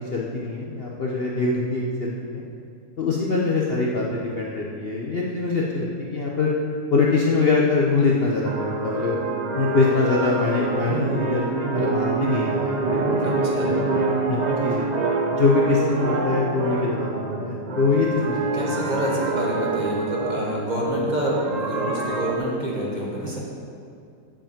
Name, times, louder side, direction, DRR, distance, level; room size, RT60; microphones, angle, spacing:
voice 1, 0.0-2.4 3.0-6.5 6.9-9.1 9.5-13.8 14.3-14.9 15.3-18.4, left 3 dB, 45° left, -4 dB, 1.0 m, -23 dB
sound 1, 8.4-22.4, right 3 dB, 60° right, 0.4 m, -26 dB
voice 2, 13.2-13.7 18.5-23.4, equal, 25° right, -4 dB, 1.6 m, -27 dB
7.6 x 7.5 x 7.3 m, 2.4 s
omnidirectional pair, 1.8 m